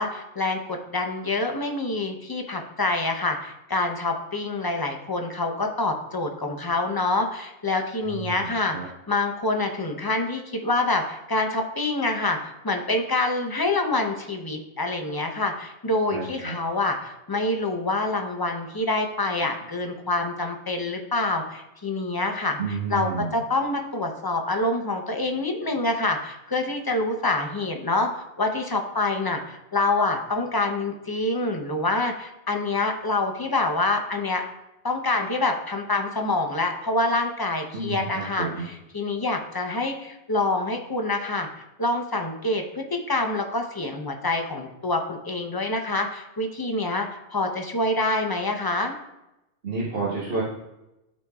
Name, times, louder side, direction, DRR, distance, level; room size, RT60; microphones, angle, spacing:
voice 1, 0.0-8.8 9.1-22.6 22.9-34.4 34.8-41.5 41.8-48.9, left 2 dB, 25° left, 3 dB, 0.6 m, -26 dB
voice 2, 8.0-8.9 16.1-16.5 22.6-23.4 37.7-38.6 49.6-50.4, right 4 dB, 50° right, -7 dB, 1.5 m, -30 dB
12.0 x 4.1 x 2.4 m, 0.93 s
omnidirectional pair, 1.2 m